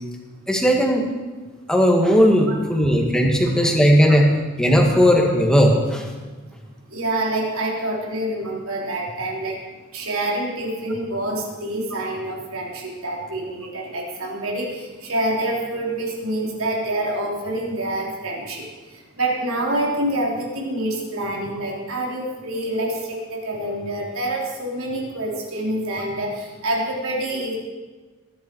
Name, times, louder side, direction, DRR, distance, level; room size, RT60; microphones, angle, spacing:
voice 1, 0.5-1.0 1.7-4.3 4.6-6.1, equal, 5° left, 0 dB, 2.0 m, -17 dB
voice 2, 2.5-2.9 6.9-9.6 9.9-18.6 19.2-27.5, right 1 dB, 85° right, -2 dB, 3.8 m, -26 dB
20.0 x 11.0 x 4.7 m, 1.3 s
head